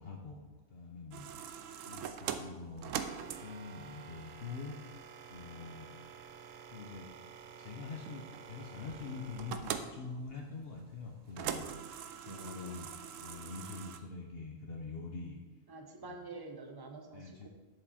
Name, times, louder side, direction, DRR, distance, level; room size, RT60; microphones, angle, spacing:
voice 1, 0.0-1.3 1.9-2.9 3.4-4.8 5.3-5.9 6.7-7.1 7.6-12.9 13.2-15.4 16.0-16.2 17.1-17.5, left 4 dB, 55° left, 0 dB, 1.0 m, -45 dB
sound 1, 1.1-14.0, right 8 dB, 90° right, 1.0 m, -44 dB
voice 2, 12.2-12.8 15.7-17.5, right 2 dB, 20° right, 4 dB, 0.8 m, -47 dB
8.0 x 7.0 x 4.2 m, 1.3 s
omnidirectional pair, 1.3 m